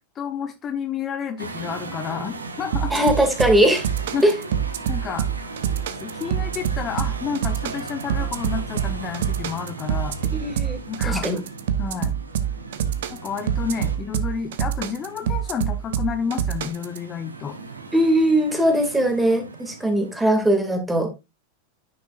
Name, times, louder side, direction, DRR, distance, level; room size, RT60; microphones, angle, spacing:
voice 1, 0.1-2.9 4.1-4.3 4.9-5.3 6.0-10.2 10.9-11.3 11.8-12.2 13.1-17.6, left 7 dB, 30° left, 7 dB, 1.1 m, -30 dB
sound 1, 1.4-20.5, right 3 dB, 85° right, 1.2 m, -38 dB
sound 2, 2.7-17.0, right 9 dB, 65° right, 0.8 m, -26 dB
voice 2, 2.9-3.9 4.2-4.3 10.3-11.4 17.9-21.1, right 1 dB, 10° right, 6 dB, 2.2 m, -20 dB
10.0 x 6.0 x 2.4 m, 0.23 s
figure-of-eight pair, 90°, 0 cm